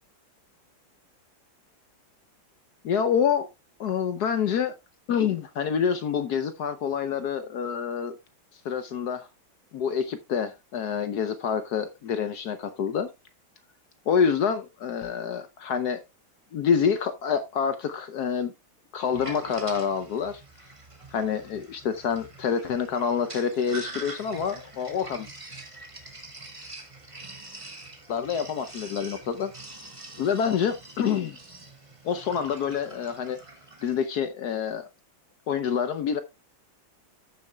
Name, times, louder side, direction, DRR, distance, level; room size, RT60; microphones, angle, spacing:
voice 1, 2.8-3.5 3.8-4.7 5.1-8.1 8.6-9.3 9.7-13.1 14.1-16.0 16.5-18.5 18.9-20.4 21.1-25.3 28.1-29.5 30.2-31.4 32.0-33.4 33.8-34.8 35.5-36.2, left 7 dB, 65° left, 1.1 m, -27 dB
Sink (filling or washing), 19.0-34.1, right 2 dB, 15° right, 1.8 m, -44 dB
14.5 x 6.9 x 2.2 m
omnidirectional pair, 2.2 m